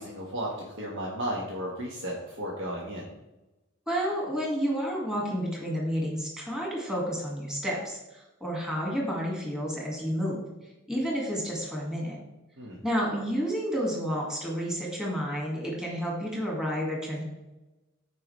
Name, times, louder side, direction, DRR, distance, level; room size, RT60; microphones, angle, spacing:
voice 1, 0.0-3.1 12.6-12.8, equal, 65° right, -3 dB, 1.5 m, -34 dB
voice 2, 3.9-10.4 10.9-12.2 12.8-17.2, equal, 5° right, -4 dB, 1.9 m, -30 dB
14.0 x 4.9 x 3.2 m, 1.0 s
head